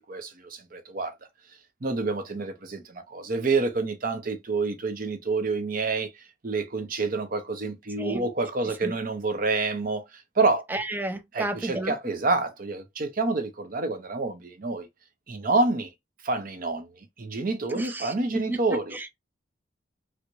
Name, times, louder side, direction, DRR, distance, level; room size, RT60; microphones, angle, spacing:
voice 1, 0.1-1.1 1.8-10.6 11.3-14.9 15.3-15.9 16.2-16.9 17.2-19.0, right 3 dB, 50° right, 0.7 m, -28 dB
voice 2, 10.7-11.9 17.7-18.6 18.9-19.2, right 1 dB, 10° right, 0.4 m, -32 dB
4.5 x 2.1 x 2.5 m
head